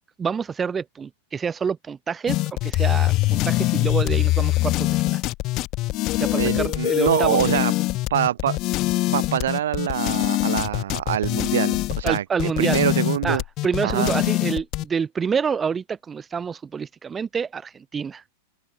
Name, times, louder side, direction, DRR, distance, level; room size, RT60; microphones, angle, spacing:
voice 1, 0.2-5.2 6.1-7.6 12.0-12.8 13.2-18.2, right 6 dB, 20° right, 3.6 m, -27 dB
sound 1, 2.3-14.8, left 19 dB, 40° left, 1.4 m, -23 dB
voice 2, 6.4-7.7 8.1-8.6 9.1-13.4 13.8-14.1, right 11 dB, 60° right, 6.9 m, -24 dB
open air
figure-of-eight pair, 90°, 0 cm